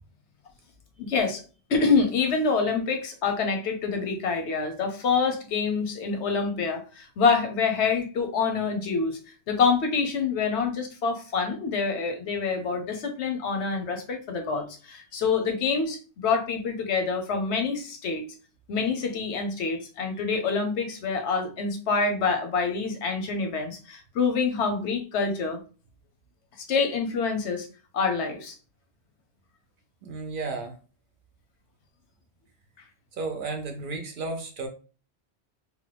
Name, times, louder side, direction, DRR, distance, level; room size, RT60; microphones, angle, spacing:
voice 1, 1.0-1.4 1.7-9.2 9.5-18.2 18.7-25.6 26.7-27.7 27.9-28.6, left 5 dB, 90° left, 5 dB, 1.0 m, -26 dB
voice 2, 30.0-30.8 33.1-34.7, right 3 dB, 60° right, 5 dB, 0.6 m, -33 dB
2.9 x 2.2 x 3.3 m, 0.37 s
omnidirectional pair, 1.1 m